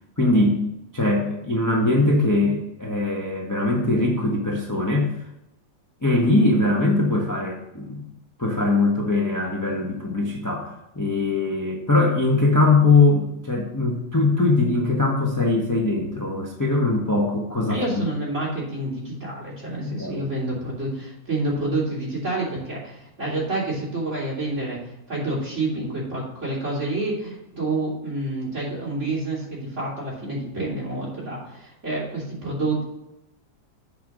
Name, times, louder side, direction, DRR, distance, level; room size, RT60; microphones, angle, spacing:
voice 1, 0.2-0.6 0.9-5.1 6.0-8.0 8.4-18.0 19.8-20.3, left 2 dB, 15° left, -2 dB, 0.9 m, -21 dB
voice 2, 17.7-24.8 25.1-32.8, right 2 dB, 40° right, -5 dB, 3.5 m, -28 dB
8.1 x 5.2 x 6.1 m, 0.87 s
omnidirectional pair, 2.1 m